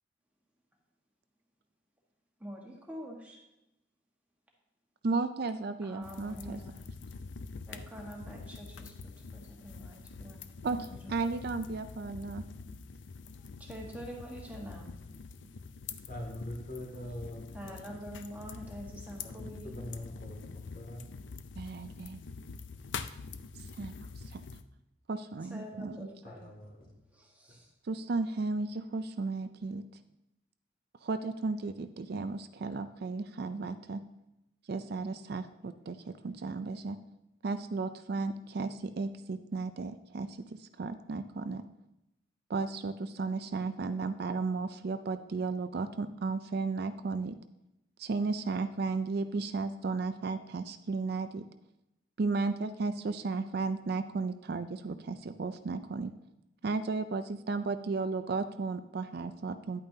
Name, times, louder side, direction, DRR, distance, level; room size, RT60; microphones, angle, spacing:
voice 1, 2.4-3.4 5.8-6.8 7.7-8.9 9.3-10.4 10.7-11.6 13.6-14.9 17.5-19.7 25.5-26.4 27.1-27.7, equal, 10° right, -2 dB, 1.5 m, -46 dB
voice 2, 5.0-6.6 10.6-12.4 21.6-22.2 23.8-23.9 24.3-24.4 25.1-26.1 27.9-29.8 31.0-34.0 34.7-37.0 37.4-41.6 42.5-47.3 48.0-51.4 52.2-56.1 56.6-59.8, right 3 dB, 50° right, 10 dB, 0.4 m, -34 dB
sound 1, 6.0-24.6, left 4 dB, 65° left, 0.5 m, -45 dB
voice 3, 16.1-17.8 19.2-19.3 19.6-21.0 26.2-26.9 27.5-27.6, left 1 dB, 45° left, -1 dB, 2.2 m, -43 dB
10.5 x 8.8 x 2.8 m, 0.89 s
head